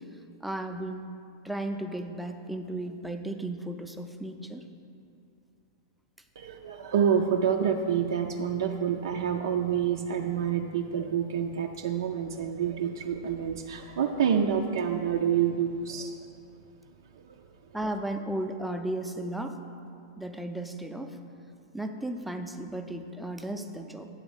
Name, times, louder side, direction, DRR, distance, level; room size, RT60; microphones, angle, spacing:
voice 1, 0.4-1.1 1.4-4.6 17.7-19.6 20.2-21.2 21.7-24.1, right 1 dB, ahead, 5 dB, 0.5 m, -35 dB
voice 2, 6.4-16.1 17.2-17.4, right 8 dB, 70° right, 2 dB, 0.5 m, -28 dB
8.7 x 4.0 x 7.1 m, 2.6 s
hypercardioid pair, 105°, 2 cm